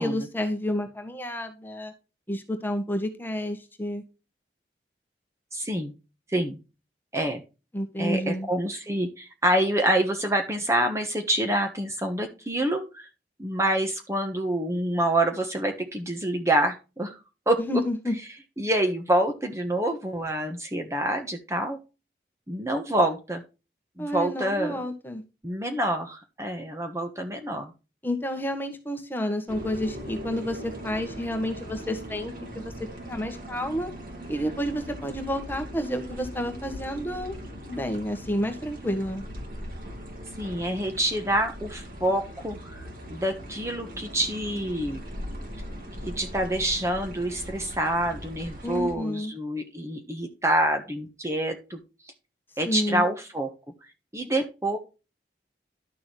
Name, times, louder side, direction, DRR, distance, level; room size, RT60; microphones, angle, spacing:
voice 1, 0.0-1.9 2.3-4.0 7.7-8.5 17.6-18.1 24.0-25.2 28.0-32.7 33.1-33.9 34.3-37.3 37.7-39.2 48.6-49.3 52.6-53.1, equal, 10° left, 5 dB, 1.5 m, -30 dB
voice 2, 5.5-5.9 6.3-6.6 7.1-7.4 8.0-13.1 13.4-17.2 17.5-17.6 18.6-21.8 22.5-23.4 24.0-24.8 25.4-27.7 40.4-42.8 43.1-45.0 46.2-51.8 52.6-53.5 54.1-54.8, right 1 dB, 15° right, 5 dB, 1.3 m, -27 dB
sound 1, 29.5-48.9, equal, 50° right, 3.5 m, -40 dB
11.5 x 6.9 x 3.3 m, 0.30 s
head